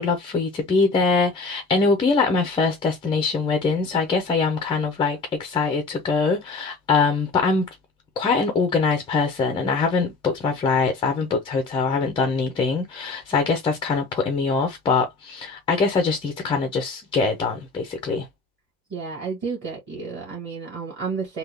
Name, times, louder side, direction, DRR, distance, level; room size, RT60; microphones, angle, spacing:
voice 1, 0.0-7.7 8.2-18.3, left 4 dB, 10° left, 0.4 m, -23 dB
voice 2, 18.9-21.4, right 5 dB, 25° right, 1.4 m, -31 dB
3.5 x 2.3 x 3.1 m
supercardioid pair, 140°, 45 cm